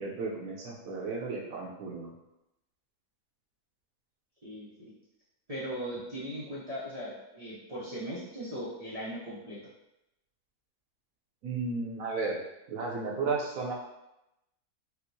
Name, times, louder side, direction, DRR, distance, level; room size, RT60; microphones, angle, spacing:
voice 1, 0.0-2.1 11.4-12.4 12.7-13.7, right 4 dB, 65° right, -1 dB, 1.0 m, -34 dB
voice 2, 5.5-9.6, equal, 45° right, -9 dB, 0.4 m, -38 dB
4.3 x 2.0 x 2.7 m, 0.90 s
omnidirectional pair, 1.7 m